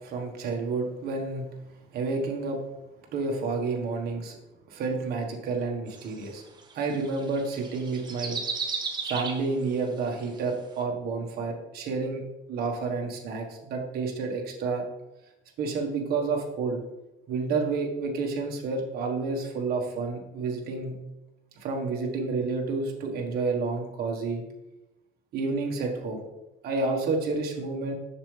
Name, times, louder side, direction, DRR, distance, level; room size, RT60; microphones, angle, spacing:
voice 1, 0.0-1.5 1.9-2.6 3.1-4.4 4.7-6.4 6.7-8.4 9.0-12.2 12.5-14.8 15.6-16.8 17.3-20.9 21.6-24.4 25.3-26.2 26.6-27.9, right 4 dB, 50° right, 2 dB, 1.5 m, -30 dB
sound 1, 5.9-9.6 10.2-10.3, right 5 dB, 20° right, 0.8 m, -34 dB
7.3 x 6.9 x 3.4 m, 0.97 s
cardioid pair, 175°, 21 cm